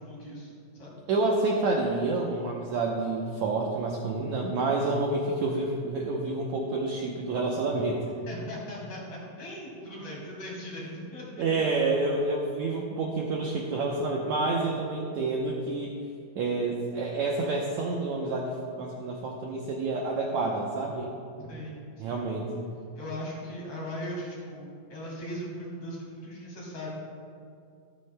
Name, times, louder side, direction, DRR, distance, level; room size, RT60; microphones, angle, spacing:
voice 1, 0.0-1.0 8.3-11.4 21.4-21.8 22.1-22.2 23.0-26.9, equal, 50° left, -4 dB, 3.2 m, -39 dB
voice 2, 1.1-8.0 11.4-15.9 16.4-21.1 22.0-22.7, right 3 dB, 75° right, -1 dB, 1.7 m, -28 dB
13.5 x 13.5 x 2.2 m, 2.3 s
omnidirectional pair, 4.2 m